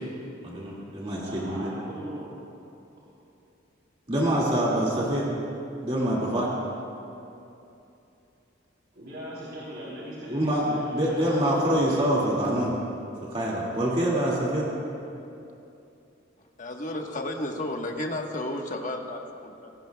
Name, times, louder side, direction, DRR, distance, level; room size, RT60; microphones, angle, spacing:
voice 1, 0.4-1.7 4.1-5.3 5.8-6.5 10.3-12.8 13.2-14.7, right 1 dB, 30° right, -5 dB, 2.2 m, -25 dB
voice 2, 1.2-2.3 8.9-11.4, equal, 60° right, -7 dB, 3.3 m, -39 dB
voice 3, 16.4-19.7, left 1 dB, 40° left, 1 dB, 1.3 m, -33 dB
24.0 x 18.0 x 2.3 m, 2.7 s
head